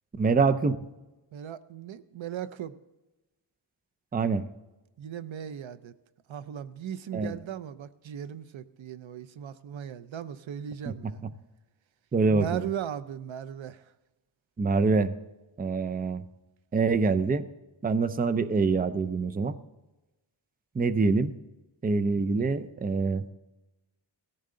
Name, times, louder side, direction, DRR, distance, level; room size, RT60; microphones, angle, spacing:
voice 1, 0.2-0.8 4.1-4.5 7.1-7.4 10.9-11.1 12.1-12.7 14.6-15.1 15.6-16.2 16.7-17.4 17.8-19.6 20.7-21.3 21.8-23.2, right 4 dB, 20° right, 11 dB, 0.5 m, -25 dB
voice 2, 1.3-2.8 5.0-5.9 6.3-11.2 12.3-13.9, right 9 dB, 90° right, 14 dB, 0.7 m, -37 dB
18.0 x 14.0 x 3.8 m, 1.1 s
wide cardioid pair, 150°, 45 cm